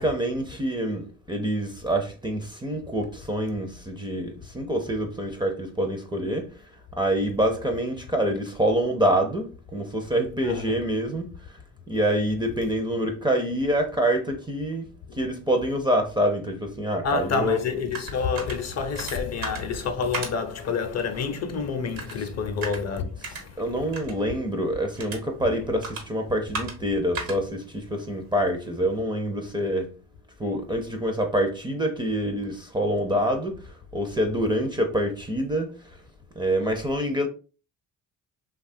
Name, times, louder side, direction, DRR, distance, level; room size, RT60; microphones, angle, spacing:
voice 1, 0.0-6.5 7.0-11.6 11.9-17.6 22.2-22.3 23.3-29.9 30.4-35.8 36.3-37.3, right 1 dB, 15° right, 0.4 m, -26 dB
voice 2, 10.4-10.8 15.1-15.2 17.0-23.6, left 5 dB, 50° left, 0.6 m, -28 dB
sound 1, 17.3-29.0, right 3 dB, 75° right, 1.0 m, -40 dB
2.9 x 2.3 x 2.6 m
cardioid pair, 85°, 34 cm